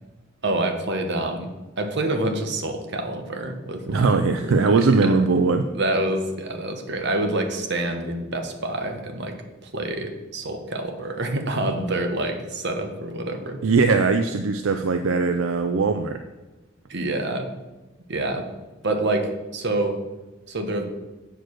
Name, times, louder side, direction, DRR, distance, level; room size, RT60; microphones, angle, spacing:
voice 1, 0.4-1.5 1.8-4.2 4.4-5.2 5.7-9.4 9.6-13.6 16.9-17.5 18.1-18.4 18.8-20.0 20.5-20.8, right 2 dB, 55° right, 5 dB, 1.1 m, -27 dB
voice 2, 3.9-5.7 13.6-16.2, right 4 dB, 75° right, 7 dB, 0.4 m, -20 dB
7.7 x 4.7 x 6.4 m, 1.1 s
head